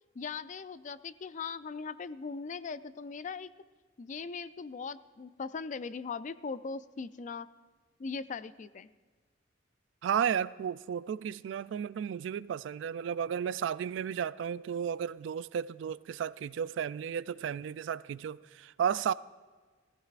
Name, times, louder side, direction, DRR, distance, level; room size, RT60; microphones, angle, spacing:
voice 1, 0.2-3.5 4.0-7.5 8.0-8.9, left 5 dB, 40° left, 0.4 m, -39 dB
voice 2, 10.0-19.1, right 8 dB, 70° right, 0.3 m, -33 dB
18.5 x 15.0 x 2.5 m
head